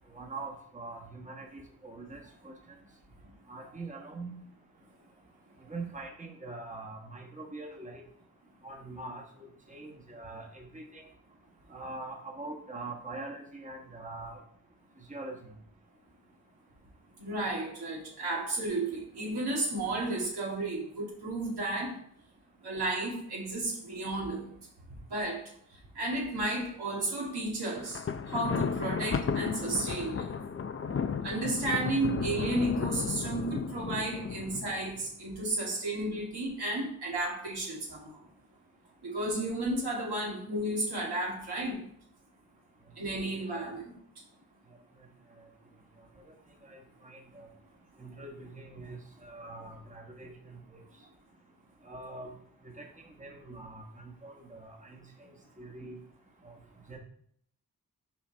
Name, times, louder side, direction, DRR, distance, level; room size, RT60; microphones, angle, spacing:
voice 1, 0.1-2.8 3.5-4.4 5.7-8.0 8.6-11.1 11.7-14.4 15.1-15.6 43.5-43.7 46.6-47.5 48.0-50.8 51.8-52.3 52.6-52.9 53.2-56.0 56.4-56.5 56.9-57.0, right 2 dB, 20° right, 0 dB, 1.3 m, -43 dB
voice 2, 17.2-21.9 22.6-24.4 25.1-25.4 26.0-28.0 28.3-30.3 31.2-38.1 39.0-41.8 43.0-43.9, right 2 dB, 85° right, -4 dB, 2.1 m, -33 dB
Thunder, 27.8-35.0, left 6 dB, 35° left, 0.5 m, -34 dB
6.6 x 4.6 x 3.3 m, 0.66 s
cardioid pair, 50°, 38 cm